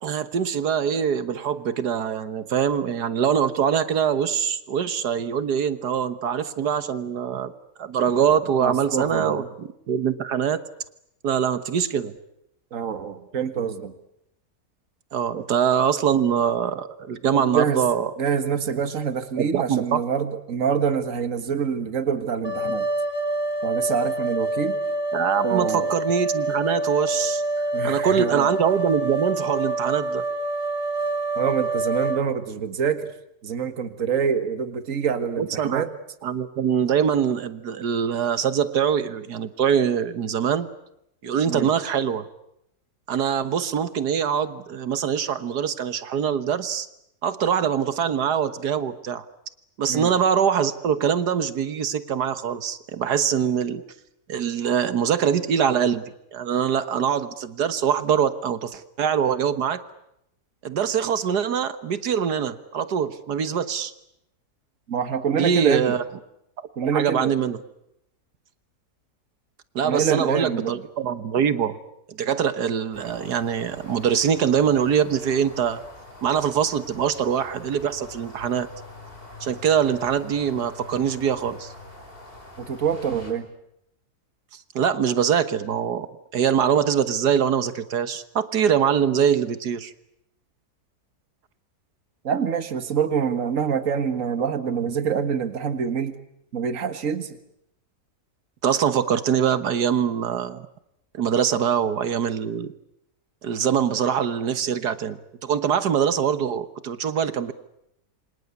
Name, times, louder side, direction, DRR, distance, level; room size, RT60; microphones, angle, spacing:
voice 1, 0.0-7.5 7.8-10.6 11.2-12.1 15.1-18.1 19.4-20.0 25.1-27.4 27.8-30.2 35.4-35.8 36.2-40.7 41.2-42.3 43.1-46.9 47.2-49.2 49.8-53.8 54.3-59.8 60.6-63.9 65.4-66.0 66.8-67.6 69.8-71.8 72.1-75.8 76.2-78.7 79.4-81.7 84.5-86.1 86.3-89.9 98.6-100.7 101.1-102.7 103.4-107.5, right 8 dB, 80° right, 13 dB, 1.8 m, -23 dB
voice 2, 8.6-9.5 12.7-13.9 15.3-15.5 17.3-17.8 18.2-22.9 23.6-24.8 25.4-25.9 27.7-28.5 31.4-33.1 33.4-35.9 41.5-41.7 49.9-50.1 64.9-65.9 66.8-67.4 69.8-70.8 82.6-83.5 92.2-96.2 96.5-97.4, right 7 dB, 55° right, 10 dB, 2.0 m, -26 dB
sound 1, 22.4-32.2, right 2 dB, 15° right, 2.0 m, -26 dB
sound 2, 72.9-83.3, left 2 dB, 35° left, 5.4 m, -44 dB
28.0 x 25.5 x 8.3 m, 0.79 s
omnidirectional pair, 1.7 m